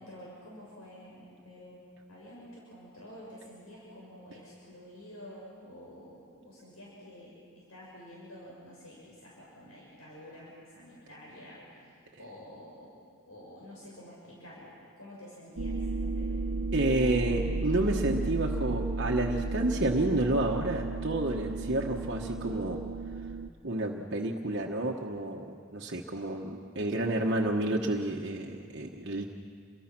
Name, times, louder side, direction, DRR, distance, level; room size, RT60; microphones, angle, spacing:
voice 1, 0.0-1.8 2.1-12.9 13.3-16.4, equal, 80° left, -5 dB, 6.6 m, -49 dB
sound 1, 15.6-23.5, right 3 dB, 85° right, 0.8 m, -33 dB
voice 2, 16.7-22.8 23.6-29.3, right 1 dB, 50° right, 0 dB, 1.3 m, -30 dB
29.0 x 23.0 x 6.1 m, 2.2 s
head